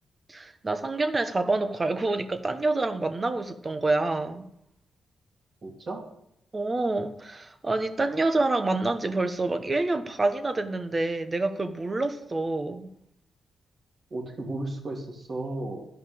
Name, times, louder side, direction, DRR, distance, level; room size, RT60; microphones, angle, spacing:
voice 1, 0.3-4.5 6.5-12.9, right 2 dB, 30° right, 1.2 m, -27 dB
voice 2, 5.6-6.0 14.1-15.9, right 2 dB, 45° right, 3.0 m, -34 dB
11.0 x 5.5 x 8.6 m
cardioid pair, 70°, 0 cm